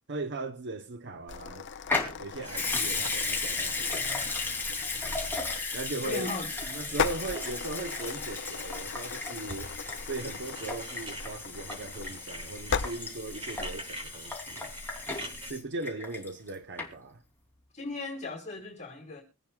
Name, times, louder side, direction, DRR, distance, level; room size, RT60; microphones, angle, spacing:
voice 1, 0.1-1.7 2.2-4.0 5.7-6.4 6.7-9.7 10.0-14.7 15.5-17.2, right 2 dB, 55° right, 1.0 m, -38 dB
sound 1, 1.3-12.9, left 6 dB, 55° left, 0.7 m, -38 dB
Water tap faucet / Sink (filling or washing) / Liquid, 1.8-16.5 16.8-16.9, left 3 dB, 10° left, 3.1 m, -35 dB
sound 2, 2.3-15.5, equal, 25° right, 6.3 m, -45 dB
voice 2, 6.0-6.6 6.9-7.0 17.7-19.2, left 3 dB, 30° left, 5.2 m, -37 dB
25.5 x 9.1 x 2.4 m
head